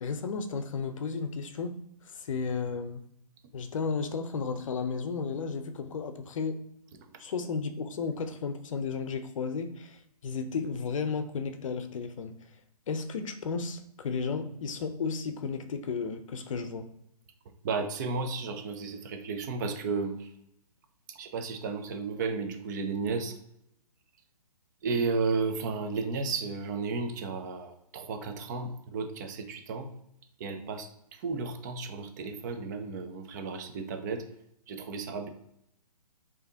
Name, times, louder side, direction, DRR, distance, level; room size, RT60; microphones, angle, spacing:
voice 1, 0.0-1.7 2.1-3.0 3.5-6.6 7.2-12.3 12.9-16.8, left 5 dB, 55° left, 0.6 m, -33 dB
voice 2, 17.6-20.3 21.1-23.4 24.8-29.9 30.4-34.2 34.7-35.3, right 4 dB, 30° right, 0.5 m, -33 dB
4.8 x 2.8 x 2.7 m
figure-of-eight pair, 140°, 20 cm